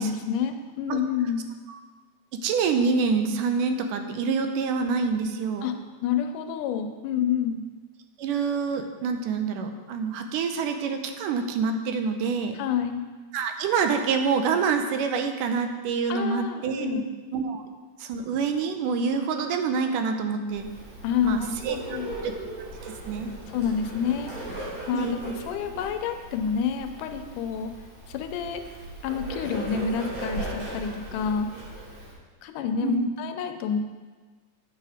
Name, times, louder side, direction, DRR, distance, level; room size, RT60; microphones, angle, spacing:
voice 1, 0.0-1.5 5.6-5.8 6.0-7.6 12.5-13.0 16.1-17.0 21.0-22.1 23.5-24.3 24.9-27.7 28.1-28.6 29.0-31.5 32.4-33.8, left 7 dB, 80° left, 7 dB, 2.2 m, -28 dB
voice 2, 2.3-5.7 8.2-12.6 13.3-17.0 17.3-17.6 18.0-20.7 21.2-22.3 22.8-23.3 24.9-25.2 32.8-33.1, right 5 dB, 80° right, 6 dB, 2.3 m, -27 dB
Bird, 20.5-32.1, right 1 dB, 60° right, 4.2 m, -38 dB
9.5 x 7.7 x 4.9 m, 1.4 s
omnidirectional pair, 3.8 m